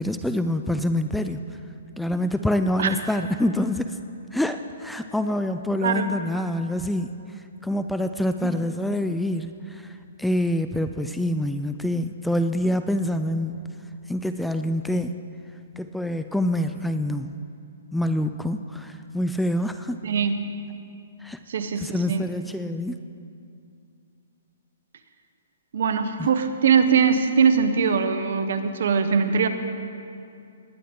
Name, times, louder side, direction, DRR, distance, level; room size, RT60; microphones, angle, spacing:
voice 1, 0.0-1.4 2.0-3.9 4.3-7.1 7.6-9.9 10.2-13.7 14.1-15.1 15.8-17.3 17.9-20.0 21.2-21.4 21.8-23.0 26.2-26.3, left 1 dB, 5° left, 8 dB, 0.4 m, -26 dB
voice 2, 5.8-6.1 20.0-20.4 21.5-22.2 25.7-29.5, right 6 dB, 65° right, 9 dB, 1.0 m, -21 dB
20.0 x 10.0 x 3.7 m, 2.5 s
hypercardioid pair, 130°, 0 cm